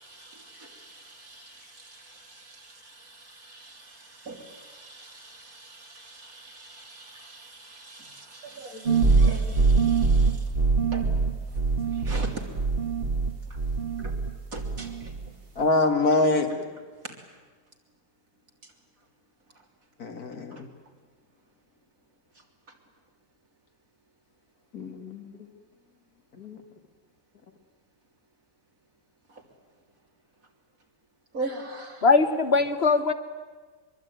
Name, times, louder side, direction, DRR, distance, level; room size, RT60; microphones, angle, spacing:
voice 1, 0.0-1.5 1.8-10.4 10.9-11.0 12.0-12.3 14.0-14.1 14.5-15.1 20.5-20.6 31.3-32.1, right 2 dB, 65° right, 1 dB, 3.7 m, -42 dB
sound 1, 8.9-14.3 14.6-15.3, right 4 dB, 40° right, 1.6 m, -23 dB
voice 2, 15.6-16.5 20.0-20.7 24.7-25.3 26.4-26.6, left 2 dB, 85° left, 5 dB, 2.5 m, -25 dB
voice 3, 32.0-33.1, left 4 dB, 45° left, 9 dB, 1.2 m, -20 dB
23.5 x 23.0 x 9.3 m, 1.4 s
omnidirectional pair, 1.5 m